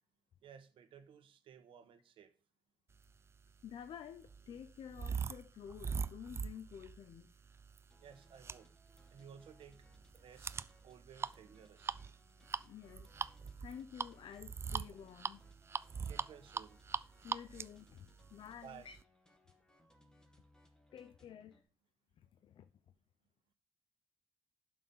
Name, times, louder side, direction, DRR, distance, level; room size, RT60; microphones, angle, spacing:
voice 1, 0.4-2.3 8.0-8.7 9.1-9.9 10.1-10.6 10.8-12.0 16.0-16.8 18.6-18.9, right 8 dB, 85° right, 1.3 m, -56 dB
sound 1, 3.4-19.0, right 5 dB, 30° right, 0.4 m, -43 dB
voice 2, 3.6-7.4 12.6-13.1 13.6-15.5 17.2-19.0 20.9-21.6 22.2-22.7, left 8 dB, 70° left, 0.7 m, -51 dB
sound 2, 7.9-21.6, equal, 10° left, 2.0 m, -69 dB
11.5 x 6.2 x 5.5 m
wide cardioid pair, 140°, 9 cm